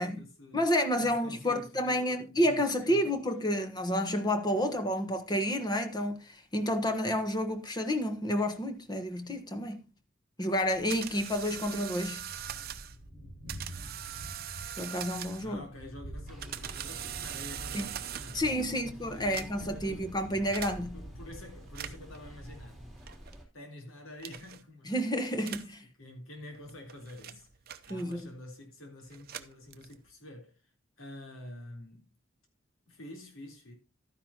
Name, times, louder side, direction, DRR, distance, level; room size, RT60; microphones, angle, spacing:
voice 1, 0.0-0.6 1.0-3.1 15.4-20.1 20.9-22.9 23.5-24.9 26.0-27.5 27.9-30.7 31.0-32.1 32.9-33.7, left 1 dB, 85° left, 3.6 m, -48 dB
voice 2, 0.5-9.8 10.4-12.2 14.8-15.6 17.7-17.9 18.3-21.0 24.9-25.8 27.9-28.3, equal, 20° left, 1.2 m, -30 dB
Thunder, 10.5-23.2, right 1 dB, 60° left, 4.2 m, -48 dB
sound 1, 10.7-13.0 13.5-15.6 16.2-18.5 19.2-19.8 20.5-20.8 21.6-22.2 23.1-23.4 24.2-24.6 25.4-25.8 26.5-28.3 29.1-30.1, right 10 dB, 50° right, 0.7 m, -42 dB
Bathroom Ambience, 16.3-23.4, equal, ahead, 3.1 m, -50 dB
12.0 x 9.9 x 2.9 m
head